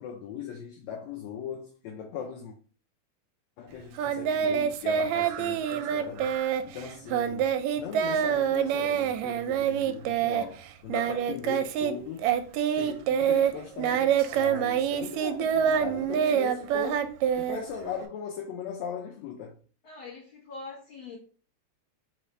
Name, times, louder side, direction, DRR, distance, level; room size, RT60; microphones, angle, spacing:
voice 1, 0.0-2.6 3.6-6.3 6.6-12.3 12.8-17.1 17.4-19.6, left 7 dB, 75° left, 1.9 m, -38 dB
Singing, 4.0-11.9 12.2-18.1, right 9 dB, 80° right, 1.7 m, -26 dB
voice 2, 19.8-21.2, left 3 dB, 55° left, 1.6 m, -43 dB
4.2 x 4.0 x 3.2 m
omnidirectional pair, 3.4 m